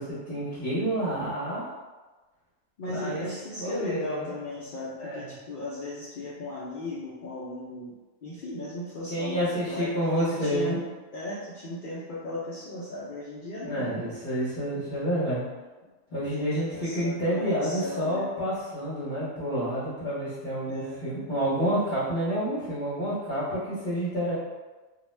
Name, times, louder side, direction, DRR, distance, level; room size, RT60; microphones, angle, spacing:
voice 1, 0.0-1.6 2.9-3.2 3.6-4.3 5.0-5.3 9.1-10.8 13.6-15.4 16.1-24.3, equal, 40° left, -13 dB, 0.8 m, -29 dB
voice 2, 2.8-7.9 8.2-14.1 15.8-18.3 20.7-21.0, left 2 dB, 85° left, -7 dB, 0.4 m, -37 dB
2.4 x 2.1 x 3.1 m, 1.2 s
omnidirectional pair, 1.4 m